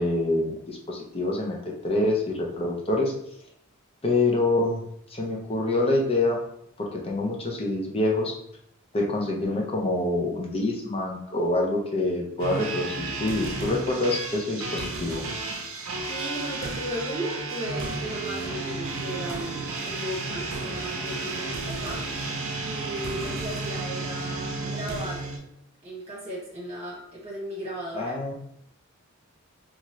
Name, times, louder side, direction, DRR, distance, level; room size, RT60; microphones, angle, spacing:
voice 1, 0.0-1.6 1.8-3.1 4.0-4.8 5.1-6.4 6.9-8.3 8.9-15.2 27.9-28.3, left 2 dB, 25° left, -1 dB, 0.5 m, -26 dB
sound 1, 12.4-25.4, right 3 dB, 75° right, 0.5 m, -32 dB
voice 2, 16.1-22.0 22.7-25.3 25.8-28.3, equal, 30° right, -6 dB, 1.3 m, -36 dB
2.7 x 2.4 x 3.0 m, 0.73 s
head